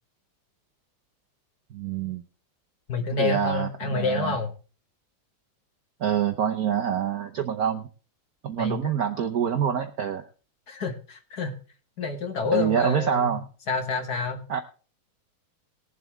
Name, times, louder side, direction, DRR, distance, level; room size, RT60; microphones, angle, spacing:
voice 1, 1.7-2.2 3.2-4.4 6.0-7.9 8.4-10.2 12.5-13.4 14.5-14.6, right 8 dB, 65° right, 6 dB, 1.0 m, -26 dB
voice 2, 2.9-4.5 8.6-9.0 10.7-11.6 12.0-13.4 13.7-14.4, left 4 dB, 50° left, 5 dB, 1.8 m, -28 dB
20.0 x 7.5 x 3.5 m, 0.36 s
omnidirectional pair, 2.4 m